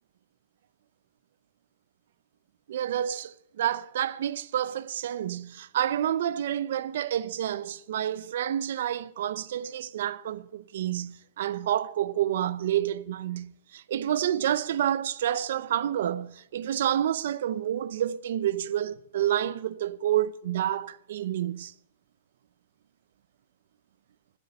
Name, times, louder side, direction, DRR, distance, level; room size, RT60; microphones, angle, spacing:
voice 1, 2.7-21.7, right 11 dB, 65° right, 0.7 m, -29 dB
13.0 x 8.3 x 8.4 m
hypercardioid pair, 160°, 0 cm